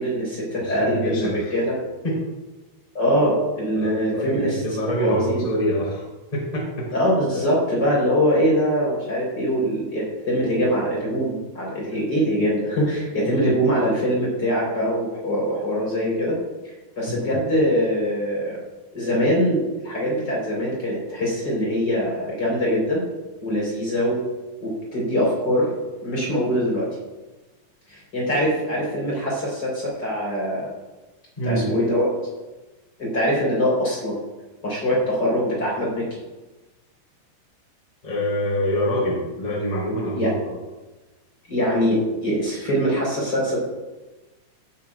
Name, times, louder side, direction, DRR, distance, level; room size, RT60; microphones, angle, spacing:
voice 1, 0.0-1.8 2.9-4.6 5.0-5.4 6.9-16.4 17.0-18.6 18.9-23.0 23.4-24.2 24.6-25.7 26.0-26.9 27.9-30.7 31.5-32.1 33.0-34.2 34.6-36.1 40.1-40.3 41.5-43.6, equal, 25° left, -5 dB, 4.4 m, -23 dB
voice 2, 0.6-1.5 2.0-2.2 3.8-6.1 6.3-6.9 13.3-13.5 17.2-17.3 31.4-31.7 38.0-40.3, equal, 10° left, -6 dB, 3.4 m, -26 dB
18.0 x 8.9 x 2.5 m, 1.1 s
omnidirectional pair, 4.5 m